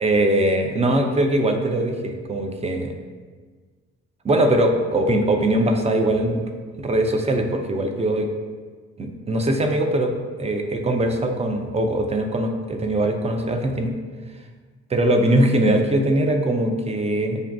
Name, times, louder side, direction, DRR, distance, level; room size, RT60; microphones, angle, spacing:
voice 1, 0.0-2.9 4.2-6.4 6.8-8.3 9.0-13.9 14.9-17.4, right 1 dB, 20° right, 4 dB, 0.5 m, -21 dB
6.6 x 2.3 x 2.2 m, 1.5 s
figure-of-eight pair, 40°, 35 cm